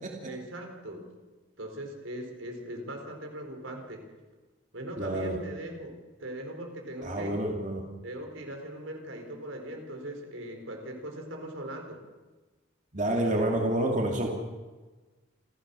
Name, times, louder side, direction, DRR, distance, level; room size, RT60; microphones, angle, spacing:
voice 1, 0.3-1.1 1.6-4.0 4.7-7.4 8.0-12.0, right 1 dB, 75° right, 3 dB, 4.3 m, -40 dB
voice 2, 5.0-5.4 7.0-7.8 12.9-14.3, right 1 dB, 40° right, 0 dB, 2.7 m, -28 dB
28.0 x 15.0 x 7.0 m, 1.3 s
head